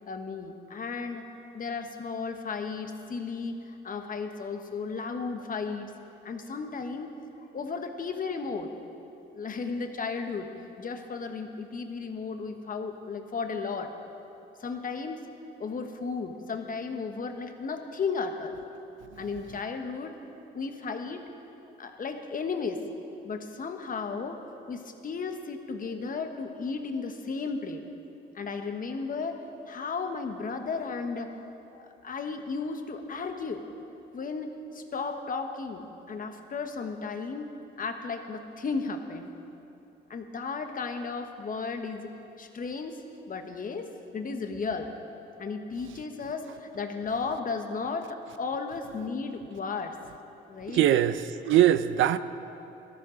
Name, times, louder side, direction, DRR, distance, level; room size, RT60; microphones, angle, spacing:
voice 1, 0.1-1.2 1.5-5.9 6.2-7.1 7.5-8.7 9.3-10.5 10.8-13.9 14.6-15.2 15.6-18.5 19.2-20.2 20.5-21.2 21.8-22.8 23.2-24.4 24.7-27.8 28.3-29.4 29.7-31.3 31.7-33.6 34.1-34.5 34.7-37.5 37.8-39.3 40.1-42.1 42.4-43.0 43.3-43.9 44.1-44.9 45.4-49.9 50.5-50.9, left 4 dB, 45° left, 5 dB, 1.3 m, -34 dB
voice 2, 50.7-52.2, right 12 dB, 80° right, 13 dB, 0.5 m, -22 dB
18.0 x 14.0 x 3.9 m, 2.8 s
cardioid pair, 90°, 20 cm